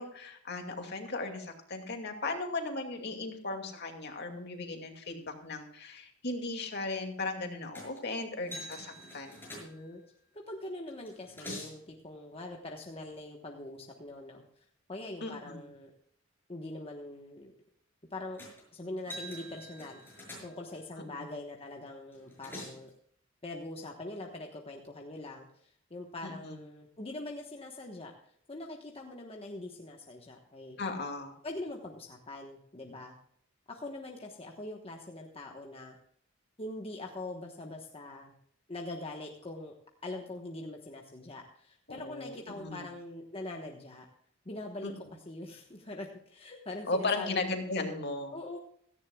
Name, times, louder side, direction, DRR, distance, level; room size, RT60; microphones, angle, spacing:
voice 1, 0.0-9.4 15.2-15.6 21.1-21.2 26.2-26.6 30.8-31.3 41.9-42.9 44.8-44.9 46.9-48.3, left 3 dB, 55° left, 4 dB, 2.4 m, -36 dB
sound 1, 7.7-8.1 8.5-10.1 10.9-11.8 18.4-18.6 19.0-20.8 22.1-22.9, equal, 10° left, 6.2 m, -45 dB
voice 2, 9.6-10.0 10.3-15.9 16.5-17.5 18.1-18.4 18.7-20.0 20.4-22.9 23.4-28.1 28.5-30.8 31.4-33.2 33.7-36.0 36.6-38.3 38.7-39.7 40.0-44.1 44.4-44.9 45.3-47.4 48.3-48.6, left 2 dB, 30° left, 1 dB, 1.2 m, -43 dB
17.0 x 14.5 x 2.3 m, 0.66 s
head